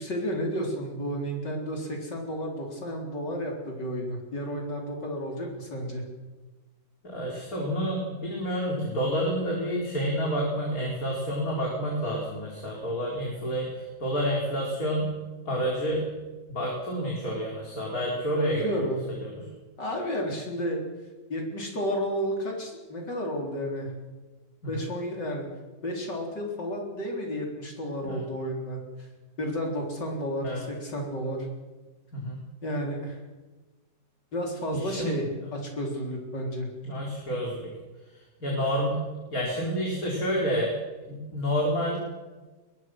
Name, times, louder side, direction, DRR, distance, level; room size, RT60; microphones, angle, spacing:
voice 1, 0.0-6.0 18.4-19.0 19.8-20.8 21.3-23.9 24.6-25.5 25.8-29.1 29.4-31.5 32.6-33.2 34.3-36.7, equal, 75° left, 1 dB, 4.7 m, -32 dB
voice 2, 7.0-15.1 15.5-16.0 16.5-18.8 19.2-19.5 24.6-24.9 28.0-28.2 30.4-30.6 32.1-32.5 34.7-35.2 36.8-37.7 38.4-39.0 39.3-40.7 41.1-42.0, equal, 50° left, -2 dB, 4.9 m, -29 dB
22.5 x 22.5 x 6.2 m, 1.2 s
omnidirectional pair, 1.9 m